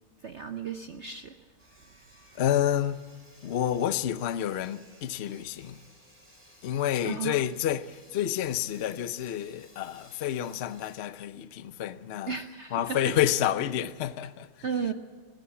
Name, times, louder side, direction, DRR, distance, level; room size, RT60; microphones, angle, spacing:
voice 1, 0.2-1.3 7.0-7.5 12.3-13.1 14.6-14.9, right 6 dB, 60° right, 0.7 m, -34 dB
Sawing, 1.6-11.0, equal, 5° right, 4.0 m, -57 dB
voice 2, 2.4-3.0 3.4-5.8 6.6-12.4 12.7-14.5, left 11 dB, 80° left, 0.5 m, -29 dB
20.0 x 17.0 x 8.4 m
omnidirectional pair, 2.1 m